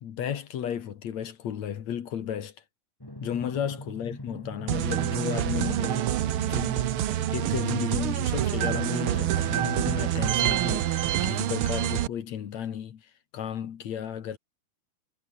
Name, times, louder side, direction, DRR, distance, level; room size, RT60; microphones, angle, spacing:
voice 1, 0.0-2.5 3.2-6.9 7.3-14.4, left 9 dB, 60° left, 2.8 m, -34 dB
Drum, 3.0-9.0, left 1 dB, 5° left, 3.8 m, -42 dB
sound 1, 4.7-12.1, right 12 dB, 80° right, 1.2 m, -27 dB
omnidirectional pair, 3.7 m